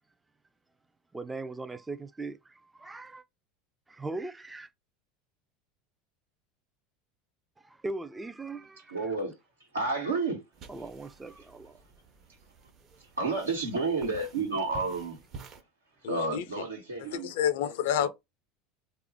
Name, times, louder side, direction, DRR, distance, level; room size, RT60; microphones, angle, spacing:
voice 1, 1.1-3.2 3.9-4.7 7.6-9.1 10.7-11.8 12.9-13.0, right 2 dB, 10° right, 0.3 m, -40 dB
voice 2, 8.9-9.3 9.7-10.4 13.0-15.2 16.0-17.3 18.0-18.1, right 3 dB, 80° right, 1.1 m, -31 dB
sound 1, 10.5-15.6, right 5 dB, 40° right, 0.8 m, -50 dB
voice 3, 16.0-16.4 17.1-18.1, left 9 dB, 60° left, 0.4 m, -29 dB
3.3 x 2.4 x 3.4 m
figure-of-eight pair, 75°, 0 cm